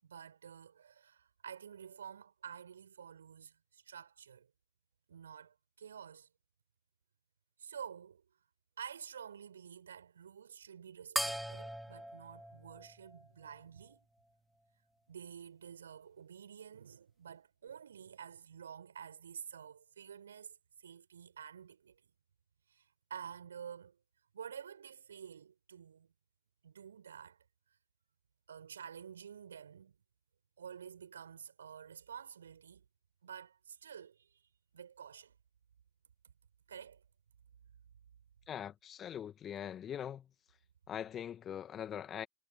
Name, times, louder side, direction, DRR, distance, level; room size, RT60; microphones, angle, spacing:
voice 1, 0.0-4.5 5.1-6.3 7.6-8.3 8.8-14.1 15.1-22.1 22.7-24.0 24.3-26.1 26.6-27.4 27.7-27.8 28.5-30.0 30.6-32.9 33.2-35.3 36.7-37.0, right 8 dB, 70° right, 6.9 m, -50 dB
sound 1, 11.2-14.0, equal, ahead, 3.8 m, -41 dB
voice 2, 38.5-40.3 40.9-42.3, left 9 dB, 25° left, 1.8 m, -42 dB
figure-of-eight pair, 90°, 0 cm